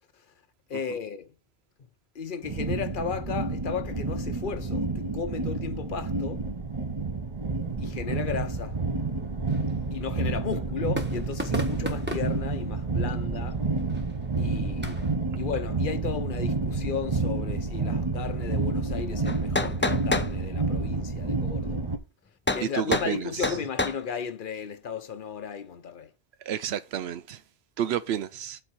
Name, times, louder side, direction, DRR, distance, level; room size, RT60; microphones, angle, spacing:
voice 1, 0.7-1.3 2.1-6.5 7.8-8.8 9.9-13.6 14.4-15.0 15.4-21.9 22.5-26.1, left 6 dB, 55° left, 0.9 m, -35 dB
sound 1, 2.4-22.0, right 3 dB, 30° right, 1.1 m, -29 dB
sound 2, 8.1-15.2, right 1 dB, 10° right, 1.2 m, -40 dB
sound 3, 19.3-20.3 22.5-22.7 22.9-23.1 23.4-24.0, left 2 dB, 20° left, 0.3 m, -27 dB
voice 2, 22.6-23.5 26.5-27.4 27.8-28.6, right 9 dB, 80° right, 0.8 m, -30 dB
7.8 x 4.3 x 6.1 m
omnidirectional pair, 1.1 m